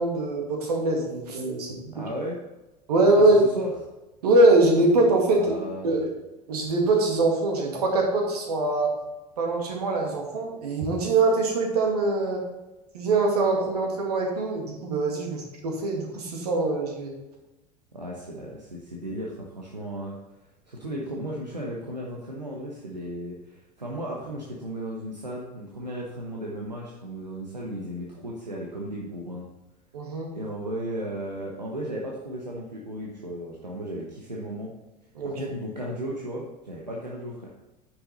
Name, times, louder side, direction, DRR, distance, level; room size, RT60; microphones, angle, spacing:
voice 1, 0.0-1.8 2.9-3.4 4.2-5.6 5.8-6.1 6.5-8.9 9.4-12.4 12.9-17.1 29.9-30.3 35.2-35.5, right 2 dB, 70° right, 1 dB, 2.1 m, -23 dB
voice 2, 1.9-2.4 3.3-3.7 5.3-6.0 17.9-20.2 20.7-29.5 30.3-34.7 35.2-37.5, right 1 dB, 90° right, -3 dB, 1.1 m, -35 dB
9.6 x 6.0 x 4.1 m, 1.1 s
figure-of-eight pair, 75°, 21 cm